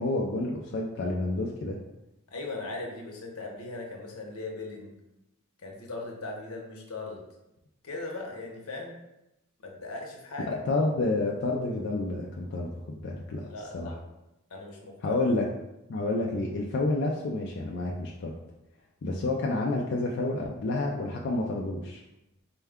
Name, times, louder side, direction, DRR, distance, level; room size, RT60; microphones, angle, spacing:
voice 1, 0.0-1.8 10.5-12.7 13.0-13.5 13.7-13.9 15.0-15.5 15.9-18.3 19.0-22.0, left 2 dB, 55° left, -1 dB, 0.4 m, -29 dB
voice 2, 2.3-4.9 5.6-7.2 7.8-8.9 9.6-10.5 13.4-14.0 14.5-15.2, left 2 dB, 85° left, 0 dB, 0.8 m, -39 dB
4.4 x 2.2 x 3.5 m, 0.92 s
head